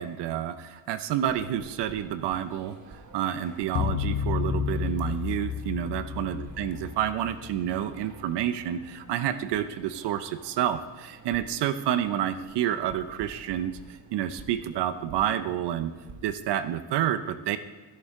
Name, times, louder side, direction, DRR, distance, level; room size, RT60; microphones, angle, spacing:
voice 1, 0.0-15.9 16.2-17.6, right 10 dB, 75° right, 13 dB, 0.6 m, -29 dB
sound 1, 1.1-16.2, right 3 dB, 45° right, 1.4 m, -50 dB
sound 2, 3.7-8.2, left 8 dB, 55° left, 0.7 m, -31 dB
16.0 x 6.6 x 3.6 m, 1.4 s
cardioid pair, 75°, 42 cm